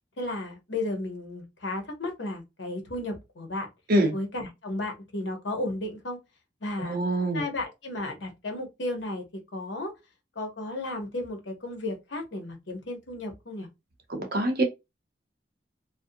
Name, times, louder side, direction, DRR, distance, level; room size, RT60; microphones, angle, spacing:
voice 1, 0.2-3.7 4.1-6.2 6.6-7.0 7.3-9.2 9.5-9.9 10.4-13.7, left 2 dB, 75° left, 0.9 m, -34 dB
voice 2, 6.8-7.4 14.1-14.6, right 1 dB, 55° right, 0.8 m, -24 dB
2.5 x 2.1 x 2.6 m
head